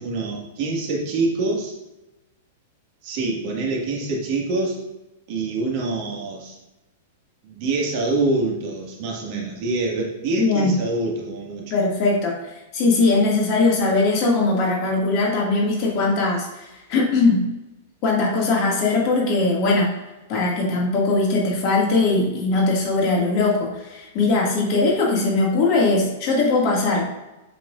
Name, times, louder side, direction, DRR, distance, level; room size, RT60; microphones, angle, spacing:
voice 1, 0.0-1.7 3.0-4.8 5.3-6.6 7.4-11.7, right 3 dB, 50° right, -1 dB, 1.9 m, -25 dB
voice 2, 10.4-10.7 11.7-16.5 16.9-17.4 18.0-19.9 20.3-27.1, left 3 dB, 45° left, -2 dB, 2.1 m, -20 dB
7.8 x 6.0 x 2.5 m, 1.0 s
figure-of-eight pair, 100°, 0 cm